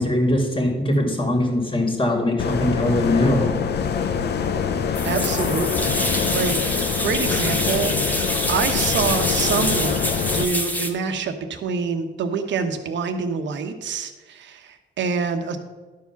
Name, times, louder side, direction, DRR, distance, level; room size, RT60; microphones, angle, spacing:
voice 1, 0.0-3.6, left 1 dB, 25° left, 2 dB, 2.2 m, -21 dB
sound 1, 2.4-10.4, left 6 dB, 55° left, 0.7 m, -24 dB
sound 2, 4.9-10.9, left 1 dB, 10° left, 1.2 m, -26 dB
voice 2, 5.0-6.5 7.0-15.6, right 5 dB, 65° right, 7 dB, 1.1 m, -26 dB
11.5 x 4.8 x 5.9 m, 1.3 s
cardioid pair, 90°, 20 cm